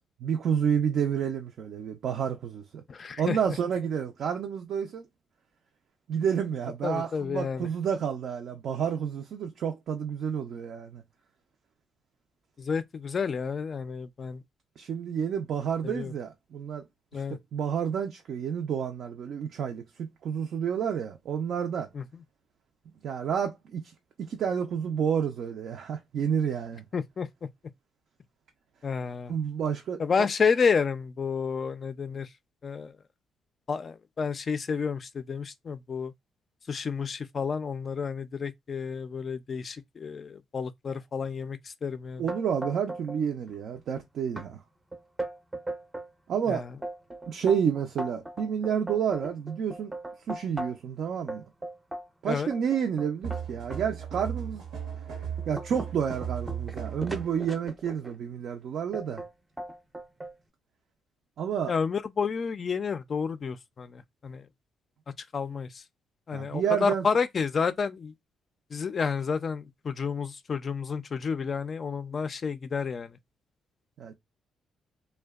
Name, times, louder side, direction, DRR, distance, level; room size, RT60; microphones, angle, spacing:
voice 1, 0.2-2.8 3.2-5.1 6.1-11.0 14.8-16.8 17.1-21.9 23.0-23.9 24.3-26.8 29.3-30.3 42.2-44.6 46.3-46.6 47.3-49.9 50.3-51.4 52.2-54.6 55.5-59.2 61.4-61.7 66.3-67.0 74.0-74.1, right 7 dB, 65° right, 0.4 m, -30 dB
voice 2, 2.9-3.4 6.8-7.7 12.6-14.4 15.8-16.1 17.1-17.4 21.9-22.2 26.9-27.5 28.8-29.3 30.0-32.3 32.6-32.9 33.7-36.1 36.7-42.2 46.5-46.7 52.3-52.5 61.7-64.5 65.3-65.8 66.3-68.1 68.7-73.2, left 5 dB, 45° left, 0.3 m, -30 dB
sound 1, 42.3-43.2 43.5-44.0 44.4-44.5 44.9-46.1 46.6-50.9 51.3-53.8 54.4-54.6 55.1-58.1 58.9-59.3 59.6-60.3, right 1 dB, 15° right, 0.5 m, -38 dB
sound 2, 53.2-57.4, right 8 dB, 85° right, 0.9 m, -36 dB
2.6 x 2.1 x 2.3 m
cardioid pair, 90°, 0 cm